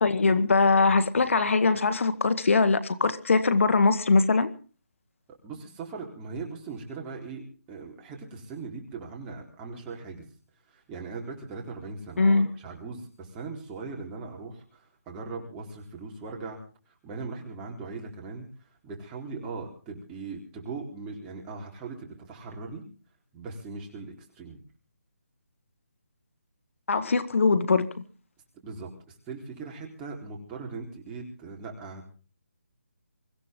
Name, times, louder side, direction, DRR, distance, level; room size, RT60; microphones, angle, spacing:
voice 1, 0.0-4.5 12.2-12.5 26.9-28.0, left 4 dB, 60° left, 1.8 m, -22 dB
voice 2, 5.4-10.3 10.7-16.6 17.0-18.5 18.8-22.8 23.3-24.6 28.6-32.1, right 4 dB, 15° right, 4.0 m, -39 dB
24.5 x 15.5 x 3.8 m
figure-of-eight pair, 160°, 8 cm